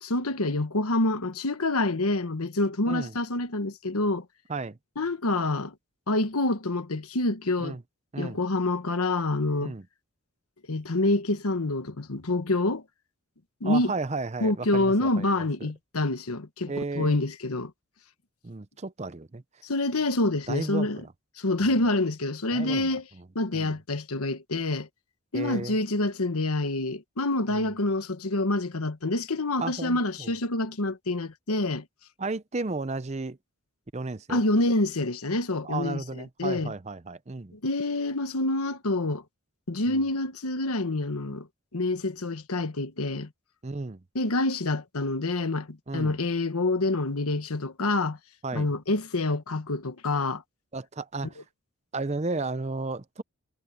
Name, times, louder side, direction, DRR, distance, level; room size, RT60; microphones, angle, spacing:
voice 1, 0.0-4.2 5.0-5.7 6.1-7.8 8.2-9.7 10.7-12.8 13.6-13.9 14.4-17.7 19.6-21.0 21.4-23.1 23.3-24.9 25.3-31.8 34.3-36.7 37.5-39.2 39.7-41.5 41.7-43.3 44.1-48.2 48.5-50.4, left 2 dB, 80° left, 1.3 m, -27 dB
voice 2, 13.6-15.7 16.7-17.2 18.4-19.4 20.5-21.1 21.6-21.7 22.5-22.9 23.5-23.8 25.3-25.8 27.5-27.7 29.6-30.3 32.2-33.4 33.9-34.4 35.6-37.6 39.9-40.0 43.6-44.0 45.9-46.2 48.4-48.7 50.7-51.4 51.9-53.2, right 3 dB, 30° right, 0.6 m, -34 dB
head